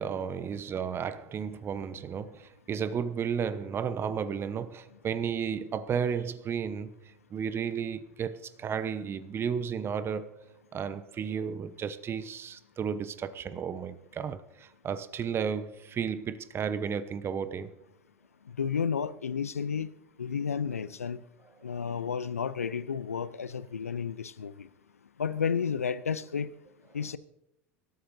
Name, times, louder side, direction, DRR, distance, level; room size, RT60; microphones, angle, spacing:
voice 1, 0.0-6.9 7.3-10.3 10.7-17.7, right 7 dB, 30° right, 0.9 m, -33 dB
voice 2, 18.6-19.9 20.2-21.2 21.6-24.7 25.2-26.5 26.9-27.2, left 6 dB, 90° left, 0.5 m, -32 dB
25.0 x 13.0 x 2.7 m
hypercardioid pair, 80°, 8 cm